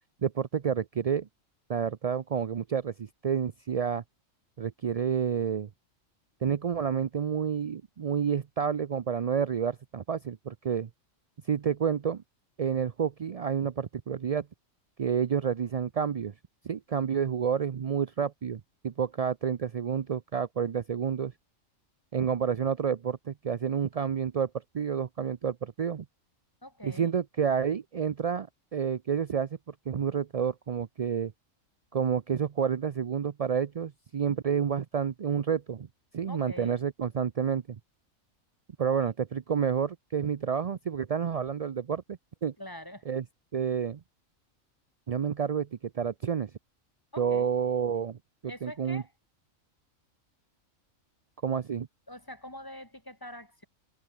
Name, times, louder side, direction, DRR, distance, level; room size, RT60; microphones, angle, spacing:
voice 1, 0.2-1.3 1.7-4.0 4.6-5.7 6.4-10.9 11.5-12.2 12.6-14.5 15.0-16.3 16.6-21.3 22.1-24.5 24.7-26.1 26.8-29.5 29.9-31.3 31.9-35.9 36.1-37.6 38.8-42.5 43.1-43.2 43.5-44.0 45.1-45.7 45.9-46.5 47.2-48.2 48.6-49.0 51.4-51.9, right 7 dB, 55° right, 0.4 m, -29 dB
voice 2, 26.6-27.1 36.2-36.8 39.0-39.1 42.6-43.1 47.1-47.5 48.5-49.1 52.1-53.7, left 1 dB, 15° left, 4.6 m, -44 dB
omnidirectional pair, 1.4 m